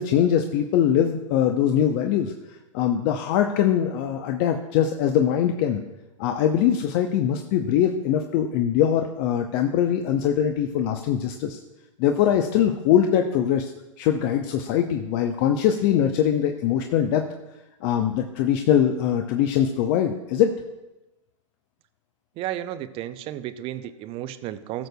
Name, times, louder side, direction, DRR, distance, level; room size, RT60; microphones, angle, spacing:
voice 1, 0.0-2.3 2.7-5.8 6.2-11.6 12.0-13.7 14.0-17.2 17.8-20.6, left 9 dB, 45° left, 5 dB, 0.7 m, -22 dB
voice 2, 22.4-24.9, right 12 dB, 35° right, 13 dB, 0.5 m, -33 dB
18.0 x 6.5 x 2.3 m, 0.97 s
hypercardioid pair, 105°, 17 cm